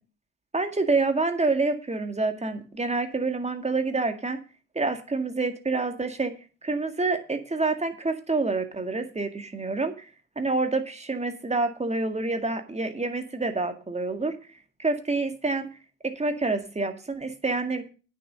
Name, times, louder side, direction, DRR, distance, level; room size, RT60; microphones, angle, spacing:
voice 1, 0.5-4.4 4.8-6.3 6.6-10.1 10.4-14.3 14.8-15.7 16.0-17.8, right 3 dB, 20° right, 7 dB, 1.9 m, -27 dB
9.4 x 6.3 x 6.6 m, 0.35 s
hypercardioid pair, 50°, 35 cm